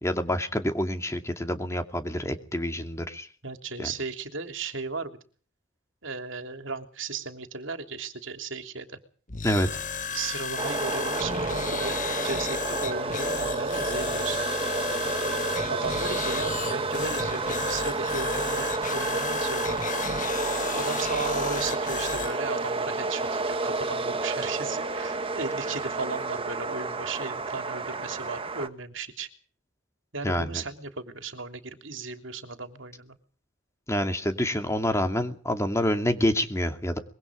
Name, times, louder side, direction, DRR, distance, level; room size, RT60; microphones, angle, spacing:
voice 1, 0.0-3.3 3.8-3.9 9.4-9.7 30.2-30.6 33.9-37.0, left 1 dB, 15° left, 6 dB, 2.5 m, -27 dB
voice 2, 3.4-5.2 6.0-9.0 10.1-14.4 15.7-20.1 20.8-29.3 30.1-33.2, right 4 dB, 65° right, 7 dB, 3.2 m, -35 dB
sound 1, 9.3-22.3, left 6 dB, 40° left, 1.5 m, -34 dB
sound 2, 10.6-28.7, right 3 dB, 25° right, 1.6 m, -30 dB
sound 3, 11.8-12.3 12.9-13.5 14.4-14.9 15.3-15.9 17.2-17.7 19.0-19.5, right 10 dB, 50° right, 4.4 m, -44 dB
25.0 x 22.5 x 5.1 m, 0.42 s
head